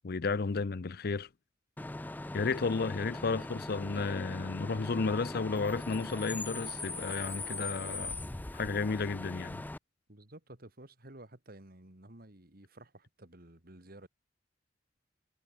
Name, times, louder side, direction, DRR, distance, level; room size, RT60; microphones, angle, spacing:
voice 1, 0.0-1.3 2.3-8.2 8.5-9.6, left 4 dB, 55° left, 0.6 m, -33 dB
Bus / Idling / Screech, 1.8-9.8, left 2 dB, 10° left, 0.5 m, -40 dB
voice 2, 10.1-14.1, right 1 dB, 55° right, 2.9 m, -53 dB
head